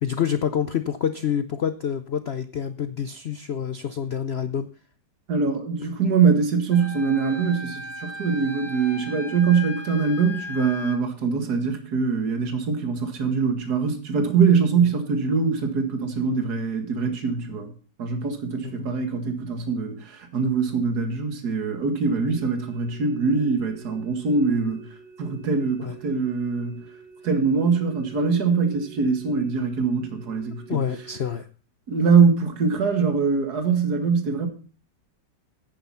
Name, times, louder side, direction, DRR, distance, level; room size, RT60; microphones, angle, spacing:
voice 1, 0.0-4.7 14.7-14.9 18.6-18.9 25.8-26.0 30.7-31.5, left 8 dB, 70° left, 0.6 m, -27 dB
voice 2, 5.3-17.7 18.0-24.9 25.2-26.8 27.2-30.8 31.9-34.5, right 5 dB, 60° right, 2.3 m, -23 dB
Wind instrument woodwind instrument, 6.7-11.0, left 2 dB, 85° left, 3.0 m, -37 dB
sound 1, 22.3-31.3, right 7 dB, 25° right, 5.0 m, -47 dB
10.5 x 9.2 x 5.6 m
omnidirectional pair, 1.9 m